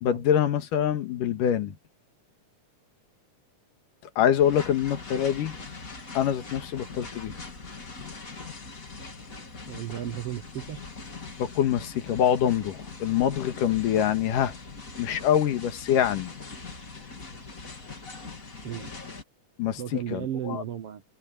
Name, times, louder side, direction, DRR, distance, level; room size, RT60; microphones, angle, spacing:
voice 1, 0.0-1.8 4.2-5.6 6.1-7.3 11.4-14.5 15.0-16.3 19.6-20.6, left 9 dB, 90° left, 3.2 m, -25 dB
sound 1, 4.4-19.2, left 4 dB, 25° left, 2.9 m, -42 dB
voice 2, 9.7-10.8 18.6-18.9 19.8-21.0, right 11 dB, 65° right, 1.5 m, -34 dB
omnidirectional pair, 3.7 m